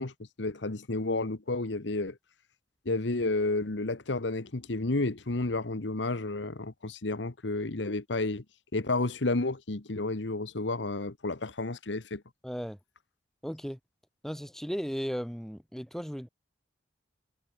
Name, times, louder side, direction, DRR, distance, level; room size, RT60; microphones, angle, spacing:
voice 1, 0.0-2.2 2.8-8.4 8.7-12.2, left 2 dB, 75° left, 1.3 m, -31 dB
voice 2, 12.4-12.8 13.4-13.8 14.2-16.3, equal, ahead, 2.7 m, -35 dB
head